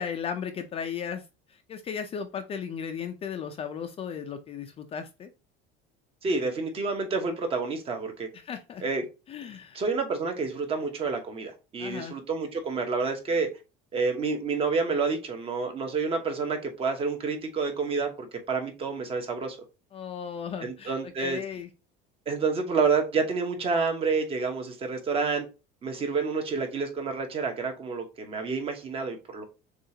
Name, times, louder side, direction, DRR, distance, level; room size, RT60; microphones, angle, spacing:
voice 1, 0.0-5.3 8.3-8.8 9.3-9.8 11.8-12.2 19.9-21.7, left 7 dB, 30° left, 0.4 m, -36 dB
voice 2, 6.2-8.3 8.8-9.0 9.7-13.5 13.9-19.6 20.6-21.4 22.3-25.5 25.8-29.4, right 4 dB, 30° right, 1.0 m, -29 dB
6.4 x 2.4 x 2.8 m
cardioid pair, 150°, 20 cm